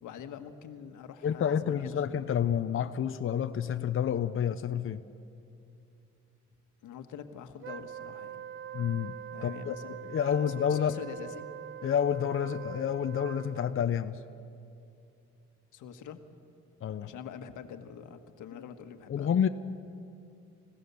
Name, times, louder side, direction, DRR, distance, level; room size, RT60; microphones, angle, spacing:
voice 1, 0.0-2.3 6.8-8.4 9.3-11.5 15.7-16.2 17.0-19.3, left 8 dB, 80° left, 8 dB, 1.5 m, -45 dB
voice 2, 1.2-5.0 8.7-9.8 10.0-10.9 11.8-14.2 16.8-17.1 19.1-19.5, left 8 dB, 45° left, 9 dB, 0.7 m, -29 dB
Wind instrument woodwind instrument, 7.6-13.9, right 9 dB, 40° right, 0.4 m, -43 dB
29.0 x 16.5 x 7.0 m, 2.6 s
cardioid pair, 90°, 30 cm